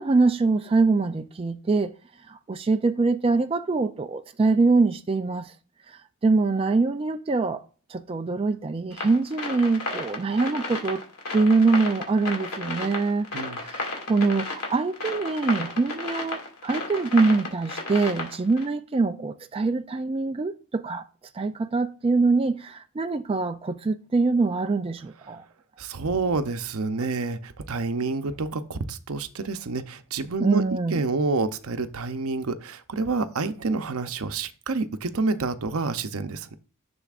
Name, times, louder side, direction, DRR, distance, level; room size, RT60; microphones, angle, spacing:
voice 1, 0.0-1.9 2.3-5.5 5.9-7.6 7.9-11.0 11.3-13.3 13.5-21.0 21.3-25.4 30.4-31.0, right 3 dB, 25° right, 0.3 m, -24 dB
sound 1, 8.9-18.7, left 3 dB, 85° left, 2.3 m, -33 dB
voice 2, 25.8-30.6 30.9-36.5, right 3 dB, 70° right, 0.7 m, -28 dB
10.5 x 7.0 x 2.4 m
head